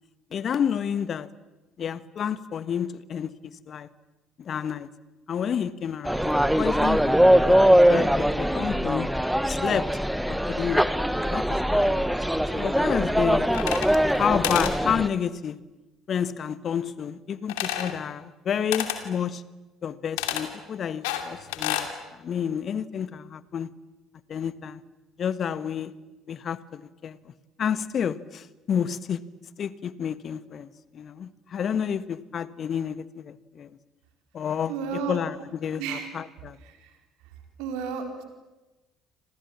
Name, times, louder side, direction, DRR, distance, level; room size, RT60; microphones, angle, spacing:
voice 1, 0.3-1.3 1.8-3.9 4.4-4.9 5.3-9.1 9.5-9.9 10.3-13.5 14.2-15.6 16.1-19.4 19.8-23.7 24.3-24.8 25.2-25.9 26.3-27.3 27.6-29.2 29.6-33.8 34.3-36.6, left 8 dB, 45° left, 16 dB, 1.3 m, -30 dB
sound 1, 6.1-15.1, equal, ahead, 1.4 m, -22 dB
sound 2, 13.5-14.2 14.4-14.8 17.5-18.0 18.7-19.0 20.2-20.5 21.0-21.9, left 12 dB, 70° left, 2.6 m, -29 dB
voice 2, 34.7-35.2 35.8-36.1 36.6-36.9 37.6-38.2, right 6 dB, 65° right, 5 dB, 4.5 m, -32 dB
29.0 x 26.5 x 7.4 m, 1.1 s
figure-of-eight pair, 55°, 0 cm